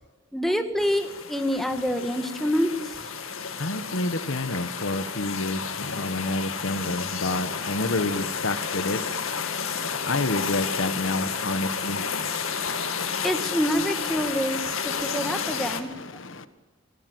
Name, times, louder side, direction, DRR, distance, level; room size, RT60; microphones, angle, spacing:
voice 1, 0.3-3.0 13.2-15.9, equal, ahead, 5 dB, 1.8 m, -26 dB
sound 1, 0.8-15.8, left 6 dB, 85° left, 2.1 m, -31 dB
voice 2, 3.6-9.0 10.0-12.0 15.5-16.5, left 2 dB, 70° left, 11 dB, 1.3 m, -29 dB
26.0 x 17.5 x 8.0 m, 1.2 s
head